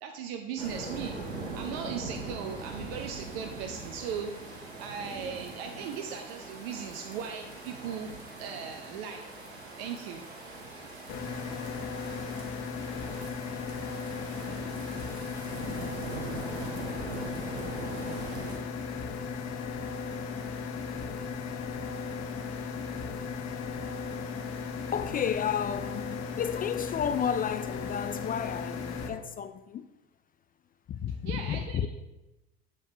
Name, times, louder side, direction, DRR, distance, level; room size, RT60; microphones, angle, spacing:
voice 1, 0.0-1.2 1.5-8.1 8.4-9.3 9.8-10.2 31.2-31.9, right 7 dB, 70° right, 0.8 m, -38 dB
sound 1, 0.6-18.5, right 3 dB, 90° right, 1.6 m, -41 dB
sound 2, 11.1-29.1, left 5 dB, 55° left, 1.1 m, -36 dB
voice 2, 24.9-29.9 30.9-31.9, left 8 dB, 30° left, 0.4 m, -32 dB
7.4 x 6.4 x 3.3 m
hypercardioid pair, 70°, 32 cm